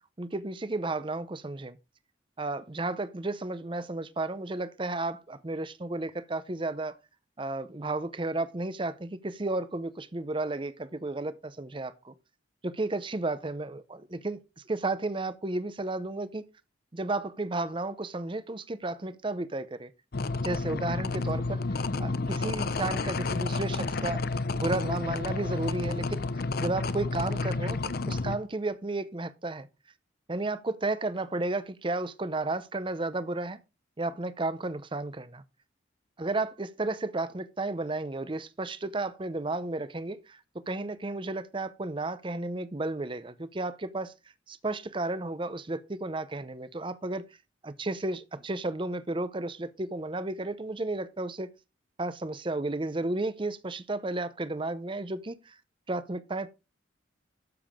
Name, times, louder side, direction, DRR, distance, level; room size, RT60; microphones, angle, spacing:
voice 1, 0.2-1.8 2.4-7.0 7.4-12.1 12.6-14.4 14.7-16.4 16.9-19.9 20.4-24.2 24.5-26.3 26.6-29.7 30.3-33.6 34.0-35.4 36.2-40.4 40.7-44.1 44.5-47.2 47.6-51.5 52.0-55.6 55.9-56.5, right 2 dB, 25° right, 0.6 m, -33 dB
sound 1, 20.1-28.4, left 3 dB, 50° left, 0.6 m, -30 dB
12.5 x 7.0 x 3.6 m
head